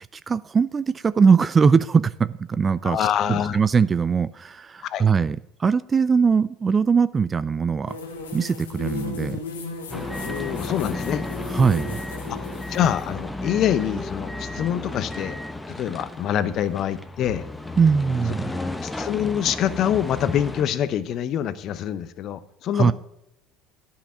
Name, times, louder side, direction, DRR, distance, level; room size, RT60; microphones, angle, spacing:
voice 1, 0.0-8.0 8.3-9.4 11.5-12.0 17.8-18.6 22.7-22.9, right 5 dB, 30° right, 17 dB, 0.4 m, -21 dB
voice 2, 2.8-3.6 4.8-5.1 10.2-11.2 12.3-12.4 12.7-15.4 15.7-17.5 18.8-22.9, left 10 dB, 55° left, 14 dB, 0.8 m, -25 dB
sound 1, 7.9-13.0, left 4 dB, 90° left, 1.3 m, -35 dB
sound 2, 9.9-20.6, left 2 dB, 10° left, 0.9 m, -33 dB
10.0 x 5.8 x 8.4 m, 0.81 s
hypercardioid pair, 70°, 0 cm